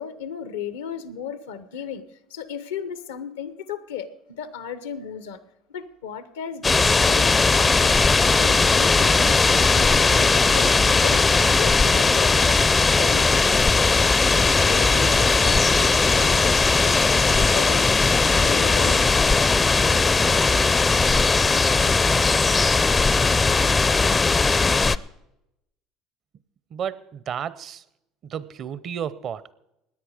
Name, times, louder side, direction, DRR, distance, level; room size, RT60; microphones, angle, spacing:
voice 1, 0.0-5.4 5.7-8.0 8.3-14.0 14.3-17.9 18.4-19.4, left 7 dB, 90° left, 13 dB, 0.9 m, -35 dB
sound 1, 6.6-25.0, left 4 dB, 25° left, 0.4 m, -18 dB
voice 2, 26.7-27.8 28.2-29.5, right 8 dB, 50° right, 18 dB, 0.7 m, -32 dB
17.0 x 10.0 x 5.0 m, 0.86 s
hypercardioid pair, 80°, 0 cm